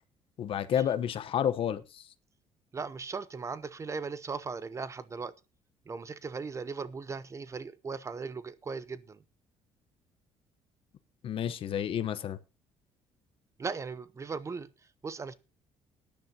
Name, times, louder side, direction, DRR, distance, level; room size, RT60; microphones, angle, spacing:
voice 1, 0.4-2.0 11.2-12.4, left 9 dB, 55° left, 0.9 m, -30 dB
voice 2, 2.7-5.3 5.9-9.2 13.6-14.7 15.0-15.3, right 4 dB, 25° right, 0.8 m, -38 dB
18.0 x 10.5 x 2.8 m
cardioid pair, 125°, 11 cm